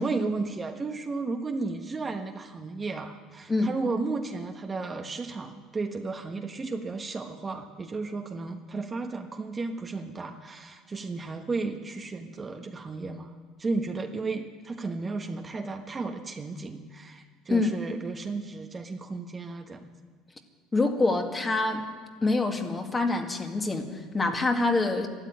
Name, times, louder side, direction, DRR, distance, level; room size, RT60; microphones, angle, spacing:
voice 1, 0.0-19.9, right 3 dB, 25° right, 4 dB, 1.2 m, -34 dB
voice 2, 20.7-21.9 22.2-25.1, left 2 dB, 20° left, 4 dB, 1.9 m, -26 dB
12.5 x 12.5 x 9.3 m, 1.5 s
supercardioid pair, 100°, 0 cm